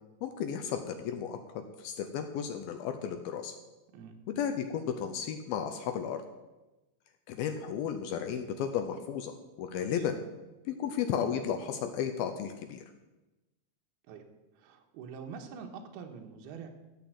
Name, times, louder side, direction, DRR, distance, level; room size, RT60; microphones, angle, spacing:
voice 1, 0.2-1.4 1.8-3.5 4.3-6.2 7.3-10.2 10.7-12.8, left 8 dB, 80° left, 7 dB, 2.3 m, -34 dB
voice 2, 9.7-10.1 14.1-14.2 14.6-16.7, right 6 dB, 70° right, 3 dB, 3.0 m, -45 dB
13.0 x 7.0 x 7.8 m, 1.1 s
omnidirectional pair, 5.1 m